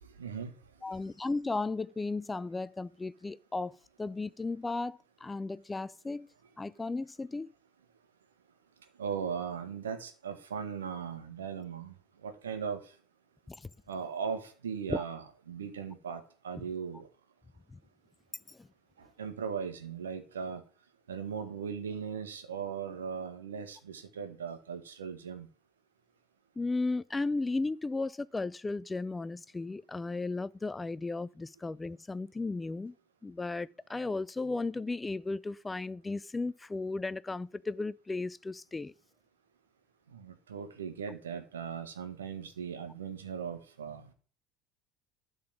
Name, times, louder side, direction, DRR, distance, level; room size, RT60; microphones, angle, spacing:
voice 1, 0.2-0.5 9.0-11.9 12.2-12.8 13.9-15.2 15.5-17.0 19.2-20.6 21.1-25.5 40.1-44.1, right 6 dB, 75° right, 1.4 m, -38 dB
voice 2, 0.8-6.3 6.6-7.5 13.5-13.6 14.9-15.0 18.5-18.6 26.6-32.9 33.2-38.9, left 3 dB, 15° left, 0.4 m, -35 dB
11.5 x 4.0 x 7.4 m
figure-of-eight pair, 65°, 0 cm